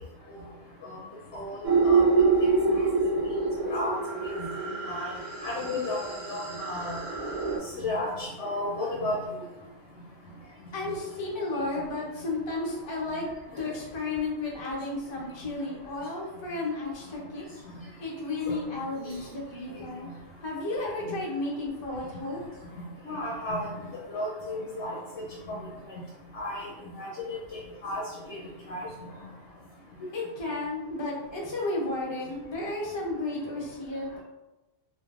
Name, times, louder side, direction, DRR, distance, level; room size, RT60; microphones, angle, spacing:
voice 1, 1.3-2.3 2.7-2.8 3.6-4.4 4.9-5.1 5.4-7.0 7.8-9.1 18.5-18.6 23.0-23.7 24.1-25.0 25.5-25.6 26.3-26.7 27.0-28.0 28.3-28.4 28.7-28.8, left 2 dB, 70° left, -4 dB, 0.9 m, -33 dB
sound 1, 1.6-7.6, right 4 dB, 40° right, 0.6 m, -26 dB
voice 2, 10.7-13.3 13.6-17.5 18.0-20.1 20.4-22.4 29.0-29.6 30.1-34.2, left 2 dB, 35° left, -3 dB, 0.5 m, -33 dB
3.1 x 2.2 x 2.4 m, 1.0 s
omnidirectional pair, 1.3 m